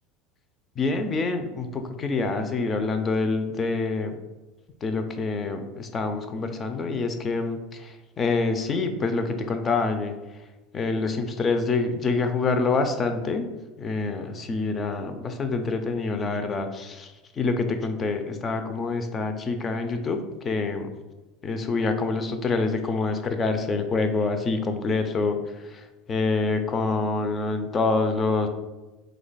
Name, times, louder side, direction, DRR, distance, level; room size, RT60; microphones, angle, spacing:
voice 1, 0.8-4.1 4.8-10.1 10.7-13.5 13.8-17.1 17.4-20.2 20.4-20.9 21.4-25.4 26.1-28.5, left 3 dB, 25° left, 7 dB, 0.4 m, -26 dB
2.9 x 2.2 x 4.0 m, 1.1 s
supercardioid pair, 120°, 0 cm